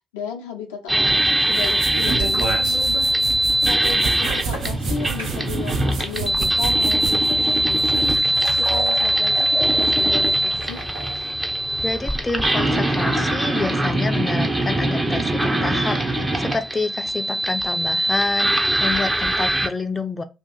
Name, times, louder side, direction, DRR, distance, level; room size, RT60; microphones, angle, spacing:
voice 1, 0.1-3.1 3.6-8.1 8.5-10.9, left 6 dB, 80° left, 0.5 m, -34 dB
sound 1, 0.9-19.7, right 1 dB, 15° right, 0.6 m, -21 dB
sound 2, 1.1-8.2, right 5 dB, 60° right, 0.6 m, -31 dB
sound 3, 1.9-11.3, right 2 dB, 90° right, 1.1 m, -33 dB
voice 2, 11.8-20.2, left 3 dB, 25° left, 0.5 m, -28 dB
2.8 x 2.3 x 3.7 m
hypercardioid pair, 45°, 0 cm